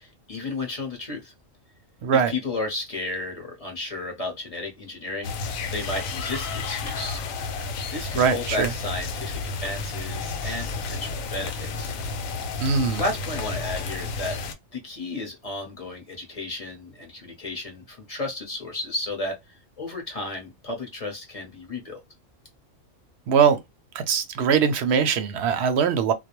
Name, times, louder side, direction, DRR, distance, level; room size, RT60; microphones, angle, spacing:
voice 1, 0.0-1.3 2.1-5.4 5.7-7.2 7.9-11.9 13.0-14.4 14.7-19.4 19.8-22.0, left 2 dB, 35° left, 0.7 m, -33 dB
sound 1, 5.2-14.5, left 4 dB, 90° left, 1.0 m, -31 dB
voice 2, 8.1-8.7 12.6-13.0 23.3-23.6 23.9-26.1, right 6 dB, 65° right, 0.7 m, -21 dB
2.3 x 2.0 x 2.9 m
omnidirectional pair, 1.4 m